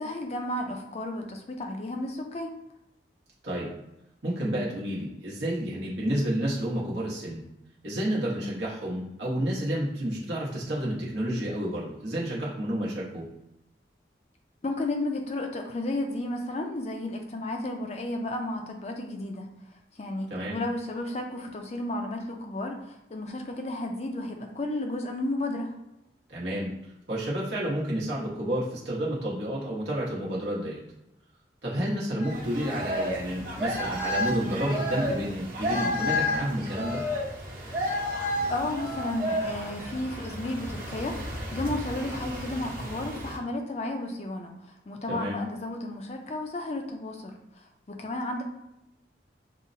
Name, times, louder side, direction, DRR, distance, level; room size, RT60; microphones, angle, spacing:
voice 1, 0.0-2.5 14.6-19.5 20.0-25.7 38.5-44.5 44.9-47.3 47.9-48.4, left 2 dB, 35° left, 3 dB, 0.4 m, -33 dB
voice 2, 4.2-7.4 7.8-13.2 20.3-20.6 26.3-30.8 31.6-37.0 45.1-45.4, equal, 80° right, -6 dB, 1.0 m, -30 dB
sound 1, 32.2-43.4, left 1 dB, 50° right, 0.9 m, -32 dB
5.4 x 2.1 x 2.6 m, 0.90 s
head